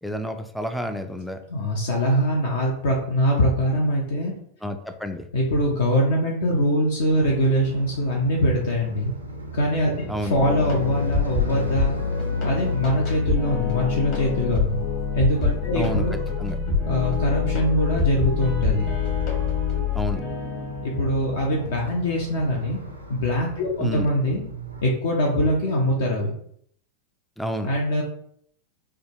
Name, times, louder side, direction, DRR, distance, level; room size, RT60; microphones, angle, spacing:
voice 1, 0.0-1.4 4.6-5.3 10.1-10.3 15.7-16.0 16.4-16.6 19.9-20.2 23.8-24.1 27.4-27.7, equal, ahead, 6 dB, 0.3 m, -29 dB
voice 2, 1.5-4.3 5.3-9.1 9.5-12.0 12.4-14.8 15.1-16.3 16.9-18.9 20.8-22.8 23.1-24.4 24.8-26.3 27.6-28.0, equal, 60° left, -1 dB, 0.5 m, -23 dB
sound 1, 7.1-24.9, right 1 dB, 85° right, 0.5 m, -38 dB
sound 2, 10.4-22.9, left 5 dB, 40° left, 1.1 m, -26 dB
3.4 x 2.2 x 2.9 m, 0.66 s
figure-of-eight pair, 90°, 0 cm